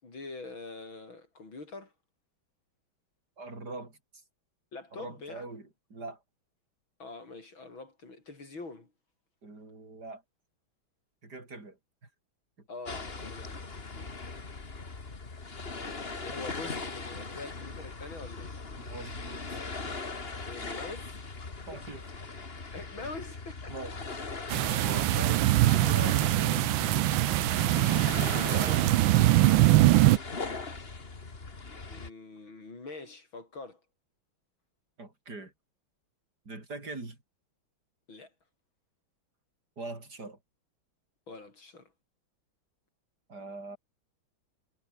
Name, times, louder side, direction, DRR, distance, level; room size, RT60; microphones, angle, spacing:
voice 1, 0.0-1.9 4.7-5.5 7.0-8.9 12.7-14.4 15.7-18.6 20.4-21.3 21.6-21.7 22.7-23.7 24.7-25.5 25.8-27.2 28.3-29.1 31.9-33.8 38.1-38.3 41.3-41.9, left 3 dB, 70° left, 6.3 m, -44 dB
voice 2, 3.4-4.2 4.9-6.2 9.4-10.2 11.2-12.1 12.6-12.7 18.7-19.9 21.7-22.1 23.7-24.0 24.8-25.1 35.0-35.5 36.5-37.2 39.8-40.4 43.3-43.8, right 3 dB, 50° right, 5.9 m, -43 dB
sound 1, 12.9-32.1, left 3 dB, 30° left, 2.3 m, -39 dB
sound 2, 24.5-30.2, right 16 dB, 75° right, 1.4 m, -23 dB
omnidirectional pair, 2.2 m